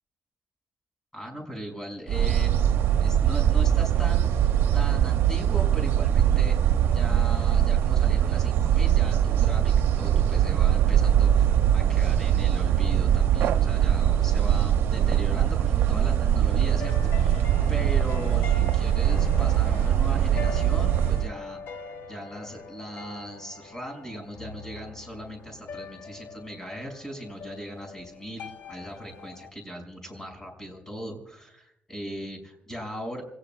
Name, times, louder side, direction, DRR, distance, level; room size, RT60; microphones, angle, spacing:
voice 1, 1.1-21.6 22.1-33.2, equal, 10° left, 2 dB, 6.4 m, -39 dB
sound 1, 2.1-21.3, right 10 dB, 85° right, 0.8 m, -22 dB
sound 2, 16.2-29.5, left 5 dB, 75° left, 1.2 m, -41 dB
27.5 x 18.5 x 2.4 m, 0.80 s
cardioid pair, 115°, 4 cm